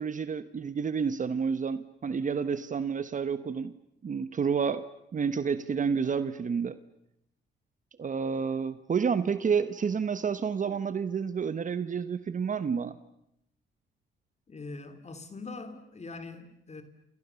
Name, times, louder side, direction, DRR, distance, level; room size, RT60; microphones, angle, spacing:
voice 1, 0.0-3.7 4.0-4.8 5.1-6.8 8.0-13.0, right 6 dB, 40° right, 13 dB, 1.2 m, -29 dB
voice 2, 14.5-16.8, left 3 dB, 35° left, 10 dB, 3.0 m, -42 dB
28.5 x 28.0 x 7.1 m, 0.81 s
cardioid pair, 90°, 20 cm